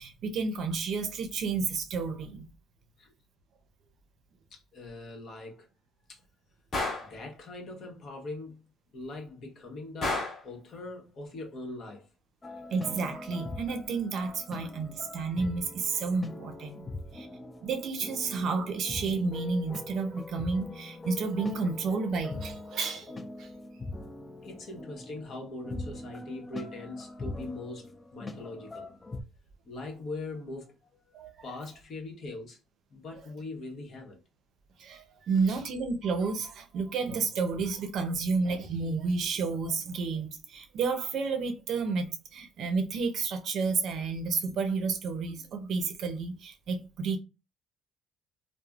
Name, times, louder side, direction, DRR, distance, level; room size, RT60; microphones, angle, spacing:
voice 1, 0.0-2.5 12.7-16.9 17.1-17.3 17.6-23.5 31.1-31.3 34.8-47.2, right 4 dB, 55° right, 0.5 m, -31 dB
voice 2, 4.5-5.7 6.1-6.2 7.0-8.7 8.9-12.1 24.4-28.9 29.6-32.6 32.9-34.2, left 2 dB, 50° left, 0.9 m, -41 dB
Gunshot gunfire, 6.7-7.1 10.0-10.5, left 2 dB, 35° left, 1.3 m, -31 dB
sound 1, 12.4-29.2, left 2 dB, 20° left, 0.3 m, -42 dB
3.2 x 2.0 x 2.3 m
cardioid pair, 125°, 0 cm